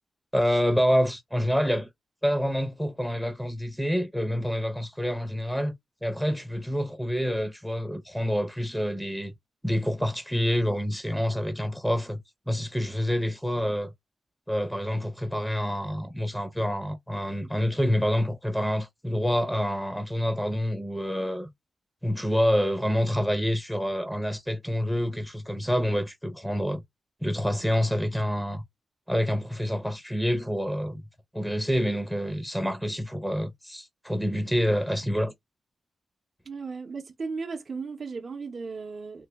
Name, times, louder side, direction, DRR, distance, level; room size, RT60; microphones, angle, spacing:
voice 1, 0.3-1.9 2.2-5.7 6.0-9.3 9.6-12.2 12.5-13.9 14.5-21.5 22.0-26.8 27.2-28.6 29.1-31.0 31.3-35.3, equal, ahead, 0.6 m, -27 dB
voice 2, 36.5-39.3, right 4 dB, 50° right, 0.7 m, -35 dB
3.2 x 2.2 x 3.4 m
wide cardioid pair, 110°, 0 cm